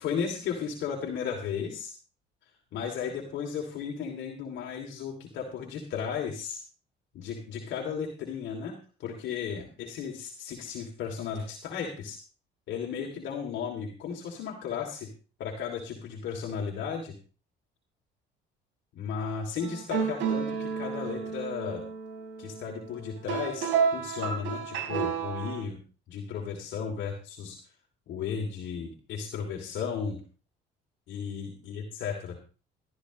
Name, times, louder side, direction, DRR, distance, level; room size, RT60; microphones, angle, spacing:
voice 1, 0.0-1.9 2.4-6.6 7.1-12.2 12.7-15.1 15.4-17.2 18.9-21.8 22.4-25.8 26.1-27.6 28.1-30.2 31.1-32.4, left 6 dB, 70° left, 0 dB, 3.0 m, -35 dB
sound 1, 19.6-25.6, right 6 dB, 75° right, 4.2 m, -31 dB
17.0 x 13.5 x 3.2 m, 0.35 s
cardioid pair, 95°, 20 cm